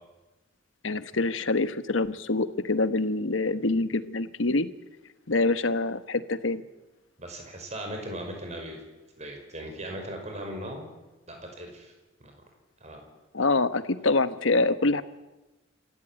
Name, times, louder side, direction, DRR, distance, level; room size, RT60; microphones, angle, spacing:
voice 1, 0.8-4.7 5.3-6.6 13.3-15.0, left 3 dB, 80° left, 12 dB, 1.2 m, -25 dB
voice 2, 7.2-8.8 9.2-10.9 11.3-11.9 12.2-12.3 12.8-13.0, right 1 dB, 35° right, 3 dB, 5.3 m, -38 dB
27.5 x 14.5 x 9.0 m, 1.1 s
head